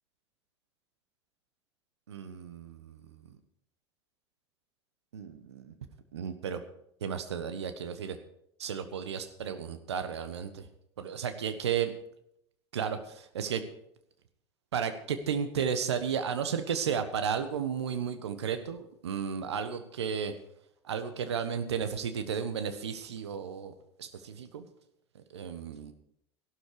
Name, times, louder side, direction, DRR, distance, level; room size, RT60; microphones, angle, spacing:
voice 1, 2.1-3.0 3.2-3.3 5.1-5.7 6.1-6.6 7.0-8.2 8.6-10.6 11.0-11.9 12.7-13.6 14.7-20.3 20.8-24.7 25.3-25.9, right 7 dB, 75° right, 10 dB, 1.3 m, -33 dB
14.5 x 12.0 x 4.9 m, 0.73 s
figure-of-eight pair, 70°, 14 cm